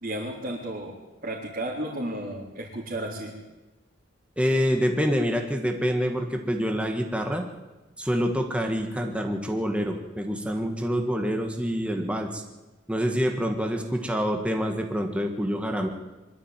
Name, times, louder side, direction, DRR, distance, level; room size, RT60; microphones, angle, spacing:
voice 1, 0.0-0.9 1.2-3.4, right 1 dB, 45° right, -5 dB, 3.9 m, -33 dB
voice 2, 4.4-7.5 8.0-12.4 12.9-15.9, equal, 5° right, 3 dB, 1.6 m, -26 dB
23.5 x 13.0 x 9.1 m, 1.1 s
head